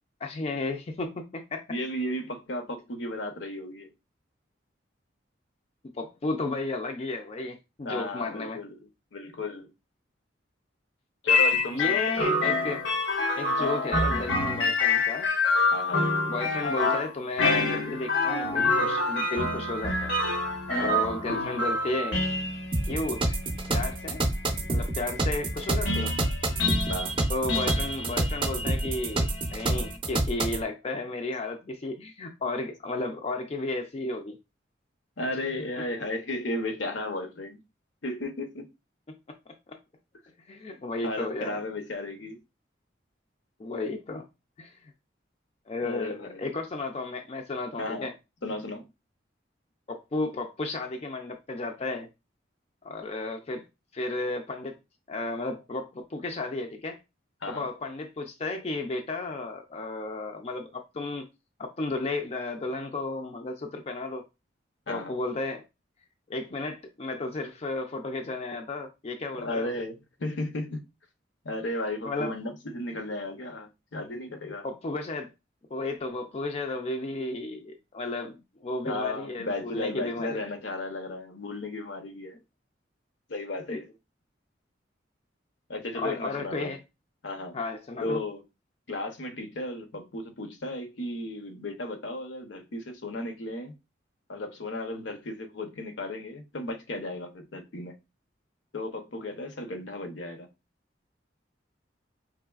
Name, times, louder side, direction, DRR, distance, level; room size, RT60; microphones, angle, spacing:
voice 1, 0.2-1.6 5.9-8.6 11.7-12.8 13.3-15.3 16.3-20.1 20.8-22.2 22.9-23.4 23.7-24.2 24.7-26.1 27.3-34.4 39.5-39.8 40.5-41.6 43.6-44.2 44.6-44.9 45.7-48.1 49.9-52.1 52.8-53.6 53.9-54.7 55.1-57.0 57.5-61.3 61.6-64.2 64.9-65.6 66.3-69.7 72.0-72.3 74.6-75.3 75.7-80.4 83.7-83.8 85.9-86.8 87.5-88.2, left 2 dB, 35° left, 0.4 m, -33 dB
voice 2, 1.7-3.9 7.8-8.8 9.1-9.7 11.2-12.0 15.7-16.1 20.7-21.0 26.9-27.1 35.2-37.6 38.0-38.7 41.0-42.4 45.8-46.6 47.8-48.1 48.4-48.8 57.4-57.7 64.9-65.2 69.4-70.8 71.4-74.7 78.8-82.4 83.3-83.9 85.7-86.8 87.2-87.6 88.0-88.4 88.9-93.7 94.3-98.0 98.7-100.5, left 1 dB, 75° left, 0.8 m, -34 dB
sound 1, 11.3-30.0, left 2 dB, 90° left, 1.2 m, -28 dB
sound 2, 22.7-30.6, right 2 dB, 25° right, 0.5 m, -28 dB
4.8 x 3.1 x 2.3 m
head